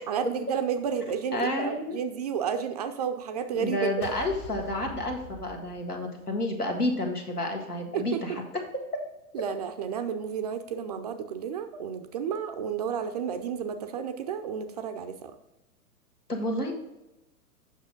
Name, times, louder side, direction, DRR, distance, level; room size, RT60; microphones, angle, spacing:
voice 1, 0.1-3.9 7.9-8.4 9.3-15.3, right 7 dB, 30° right, 8 dB, 0.4 m, -31 dB
voice 2, 1.3-2.0 3.5-8.4 16.3-16.7, left 1 dB, 85° left, 1 dB, 1.7 m, -30 dB
sound 1, 4.0-6.4, equal, 40° left, 1.2 m, -43 dB
8.1 x 6.1 x 3.7 m, 0.99 s
figure-of-eight pair, 105°, 44 cm